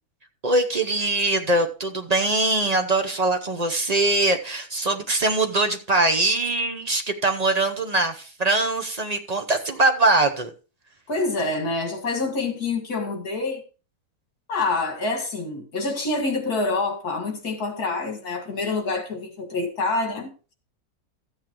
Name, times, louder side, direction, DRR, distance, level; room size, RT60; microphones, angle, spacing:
voice 1, 0.4-10.5, right 2 dB, 40° right, 0.6 m, -22 dB
voice 2, 11.1-13.6 14.5-20.3, left 3 dB, 70° left, 2.6 m, -26 dB
13.5 x 8.2 x 3.0 m
omnidirectional pair, 1.7 m